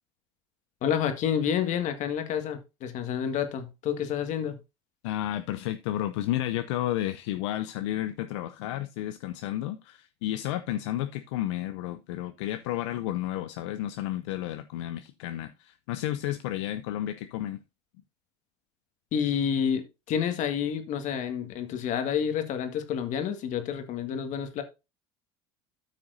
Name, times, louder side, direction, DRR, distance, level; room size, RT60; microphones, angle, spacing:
voice 1, 0.8-4.6 19.1-24.6, left 8 dB, 55° left, 1.7 m, -29 dB
voice 2, 5.0-17.6, left 13 dB, 80° left, 0.6 m, -32 dB
13.0 x 5.9 x 2.6 m
hypercardioid pair, 90°, 15 cm